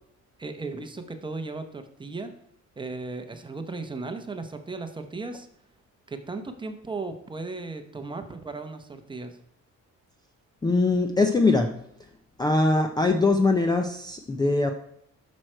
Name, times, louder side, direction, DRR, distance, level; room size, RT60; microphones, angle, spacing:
voice 1, 0.4-2.3 2.8-5.5 6.1-9.4, right 3 dB, 15° right, 7 dB, 0.8 m, -36 dB
voice 2, 10.6-11.7 12.4-14.7, left 3 dB, 15° left, 5 dB, 0.5 m, -22 dB
11.0 x 6.3 x 4.4 m, 0.71 s
cardioid pair, 160°, 30 cm